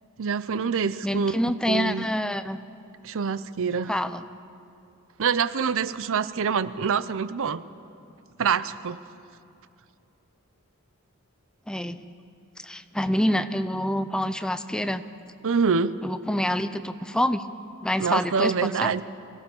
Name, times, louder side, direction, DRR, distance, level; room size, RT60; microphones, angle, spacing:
voice 1, 0.2-1.3 1.7-2.1 3.0-3.9 5.2-7.6 8.4-9.0 15.4-15.9 18.0-19.0, right 6 dB, 65° right, 15 dB, 0.6 m, -25 dB
voice 2, 1.0-2.6 3.9-4.2 11.7-12.0 12.6-15.0 16.0-17.4 17.8-18.9, equal, 5° left, 11 dB, 0.5 m, -26 dB
24.0 x 17.0 x 7.0 m, 2.6 s
head